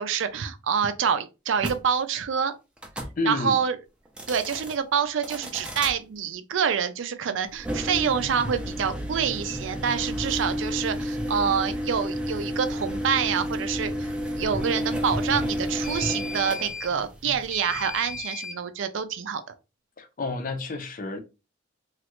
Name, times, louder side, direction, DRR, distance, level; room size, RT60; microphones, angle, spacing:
voice 1, 0.0-2.5 3.2-3.8 4.3-13.9 14.4-19.4, right 7 dB, 75° right, 0.4 m, -27 dB
sound 1, 1.6-1.8 2.8-3.1 4.0-4.7 5.2-5.9 7.5-18.6, equal, 5° right, 0.4 m, -31 dB
voice 2, 3.2-3.6 20.0-21.2, left 3 dB, 45° left, 0.5 m, -30 dB
3.0 x 2.4 x 3.0 m
head